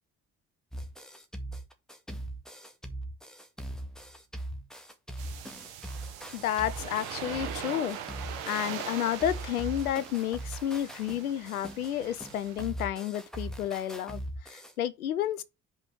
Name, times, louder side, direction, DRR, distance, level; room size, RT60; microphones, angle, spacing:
sound 1, 0.7-8.9 9.2-14.7, right 1 dB, ahead, 1.9 m, -41 dB
sound 2, 5.2-12.7, right 8 dB, 75° right, 1.4 m, -41 dB
voice 1, 6.3-8.0 8.4-15.4, left 11 dB, 90° left, 0.6 m, -31 dB
5.5 x 4.8 x 6.0 m
figure-of-eight pair, 45°, 42 cm